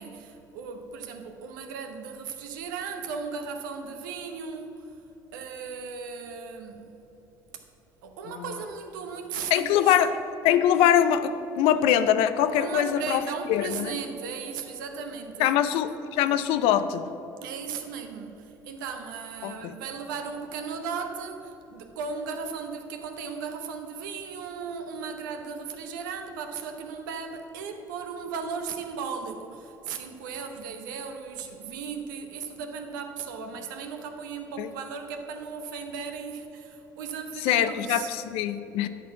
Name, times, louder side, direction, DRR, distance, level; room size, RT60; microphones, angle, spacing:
voice 1, 0.0-4.9 5.3-7.0 8.0-10.0 12.6-15.5 17.4-38.1, right 5 dB, 75° right, 6 dB, 0.8 m, -36 dB
voice 2, 9.5-10.1 10.4-13.9 15.4-17.1 19.4-19.7 34.6-34.7 37.4-38.9, left 10 dB, 65° left, 12 dB, 0.5 m, -23 dB
10.0 x 4.3 x 7.3 m, 3.0 s
hypercardioid pair, 60°, 11 cm